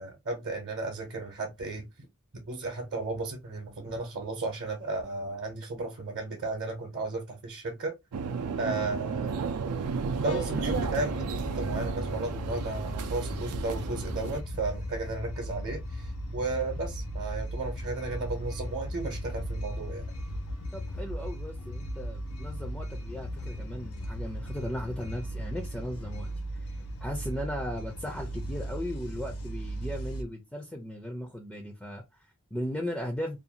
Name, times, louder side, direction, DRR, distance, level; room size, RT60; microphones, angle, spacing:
voice 1, 0.0-2.1 2.3-7.9 8.6-9.3 10.2-20.1, right 3 dB, 55° right, 0.7 m, -34 dB
sound 1, 8.1-14.4, right 5 dB, 85° right, 0.4 m, -33 dB
sound 2, 10.3-30.2, equal, 70° left, 0.5 m, -37 dB
voice 2, 20.7-33.4, equal, 5° left, 0.4 m, -37 dB
2.6 x 2.3 x 2.7 m
head